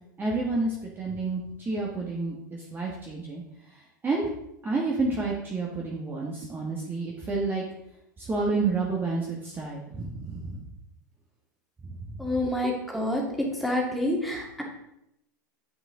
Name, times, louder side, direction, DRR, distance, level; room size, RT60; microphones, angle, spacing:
voice 1, 0.2-3.4 4.0-4.3 4.6-7.6 8.2-10.6 12.1-12.2, right 3 dB, 20° right, -2 dB, 1.4 m, -29 dB
voice 2, 12.2-14.6, left 1 dB, ahead, -2 dB, 2.0 m, -28 dB
7.3 x 6.6 x 3.7 m, 0.81 s
hypercardioid pair, 110°, 10 cm